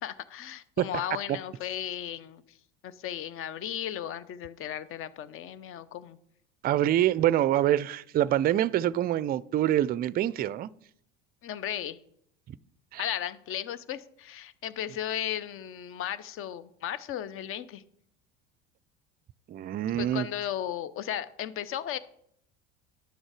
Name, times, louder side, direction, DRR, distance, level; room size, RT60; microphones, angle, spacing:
voice 1, 0.0-2.6 2.8-6.2 11.4-12.0 13.0-17.8 20.0-22.0, left 10 dB, 45° left, 0.7 m, -35 dB
voice 2, 6.6-10.7 12.5-12.6 12.9-13.1 19.5-20.3, right 12 dB, 30° right, 0.4 m, -25 dB
11.0 x 6.3 x 4.8 m
hypercardioid pair, 80°, 31 cm